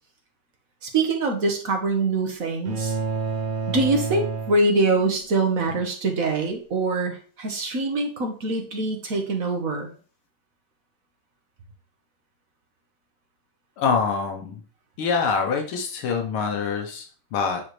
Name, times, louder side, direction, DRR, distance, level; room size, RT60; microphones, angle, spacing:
voice 1, 0.8-3.0 3.7-9.9, right 3 dB, 45° right, 3 dB, 1.4 m, -24 dB
sound 1, 2.7-5.2, right 4 dB, 90° right, 2.2 m, -29 dB
voice 2, 13.8-14.6 15.0-17.6, left 5 dB, 80° left, 3 dB, 1.9 m, -25 dB
9.2 x 4.4 x 3.2 m, 0.41 s
omnidirectional pair, 2.3 m